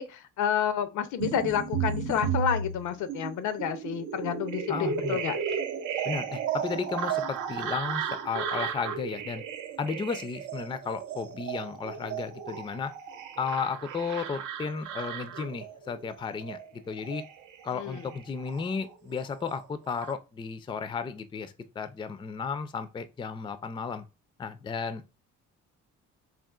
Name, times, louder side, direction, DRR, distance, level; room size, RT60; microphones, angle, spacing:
voice 1, 0.0-5.4 17.7-18.0, left 9 dB, 75° left, 0.5 m, -30 dB
sound 1, 1.2-19.0 19.3-20.1, right 7 dB, 80° right, 0.6 m, -34 dB
voice 2, 4.7-5.2 6.0-9.4 9.8-12.9 13.4-17.2 17.6-24.1 24.4-25.1, left 5 dB, 15° left, 0.3 m, -34 dB
3.7 x 2.4 x 2.3 m
cardioid pair, 90°, 30 cm